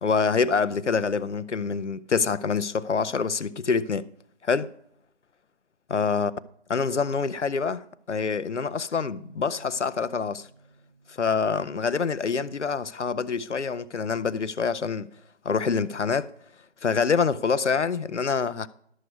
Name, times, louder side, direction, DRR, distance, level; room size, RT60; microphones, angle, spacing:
voice 1, 0.0-4.1 4.4-4.7 5.9-6.3 6.7-10.5 11.2-15.1 15.4-16.3 16.8-18.7, left 5 dB, 90° left, 0.7 m, -26 dB
sound 1, 8.9-12.6, right 3 dB, ahead, 0.5 m, -54 dB
12.5 x 6.5 x 4.6 m
figure-of-eight pair, 160°, 34 cm